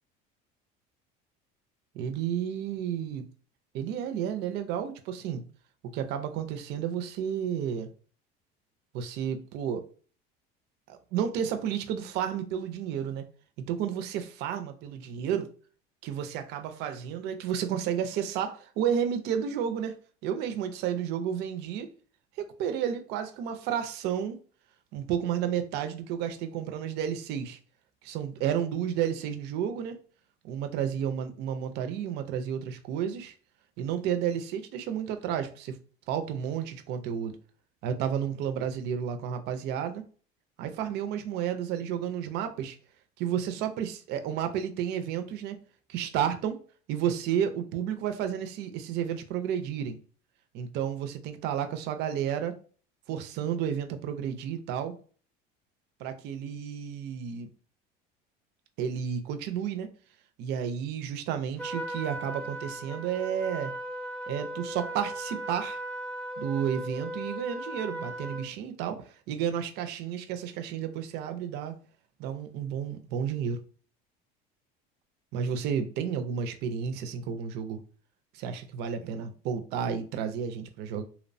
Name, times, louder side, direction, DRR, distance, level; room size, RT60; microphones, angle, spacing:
voice 1, 1.9-3.2 3.7-5.4 5.9-7.9 8.9-9.9 10.9-13.3 13.7-15.5 16.0-20.0 20.2-21.9 22.4-24.4 24.9-27.6 28.0-30.0 30.4-33.3 33.8-35.8 36.1-37.4 37.8-40.0 40.6-42.8 43.2-45.6 45.9-46.6 46.9-50.0 50.5-52.6 53.1-54.9 56.0-57.5 58.8-59.9 60.4-63.7 64.3-65.8 66.4-71.8 72.2-73.6 75.3-77.8 78.3-81.0, right 8 dB, 55° right, 0.4 m, -31 dB
Trumpet, 61.6-68.5, right 1 dB, 5° left, 0.5 m, -37 dB
2.8 x 2.0 x 2.5 m
cardioid pair, 135°, 20 cm